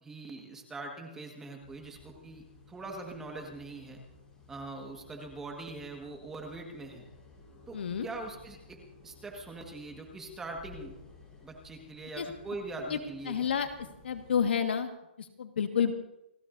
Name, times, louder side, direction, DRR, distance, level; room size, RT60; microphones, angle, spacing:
voice 1, 0.0-4.0 4.5-7.1 7.7-11.0 11.4-13.5, right 2 dB, 5° right, 1 dB, 1.7 m, -42 dB
sound 1, 1.6-14.6, left 3 dB, 10° left, 4.2 m, -56 dB
voice 2, 7.7-8.1 12.2-12.3 12.9-13.0 13.3-13.7 14.0-14.9 15.2-15.9, left 7 dB, 70° left, 6 dB, 1.7 m, -29 dB
29.0 x 13.5 x 2.7 m, 0.88 s
hypercardioid pair, 170°, 6 cm